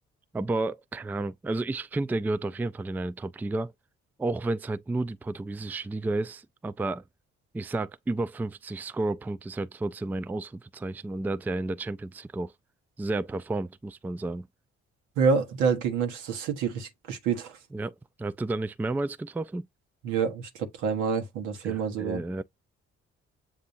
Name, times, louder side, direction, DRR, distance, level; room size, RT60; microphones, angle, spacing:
voice 1, 0.3-3.7 4.2-7.0 7.5-12.5 13.0-14.5 17.7-19.7 21.6-22.4, right 2 dB, 5° right, 0.3 m, -31 dB
voice 2, 15.2-17.6 20.0-22.2, right 6 dB, 85° right, 1.2 m, -27 dB
7.3 x 2.6 x 2.6 m
supercardioid pair, 50°, 30 cm